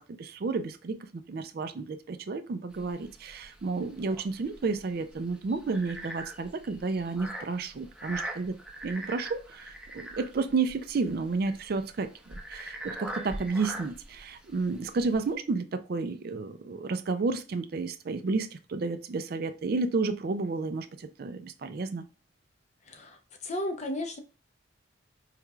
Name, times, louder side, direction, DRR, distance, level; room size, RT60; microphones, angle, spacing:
voice 1, 0.2-8.6 8.8-22.0, right 4 dB, 50° right, 0.4 m, -31 dB
sound 1, 2.7-15.3, right 1 dB, 5° right, 0.7 m, -42 dB
voice 2, 22.9-24.2, left 1 dB, 35° left, 0.5 m, -34 dB
4.7 x 3.1 x 2.3 m
head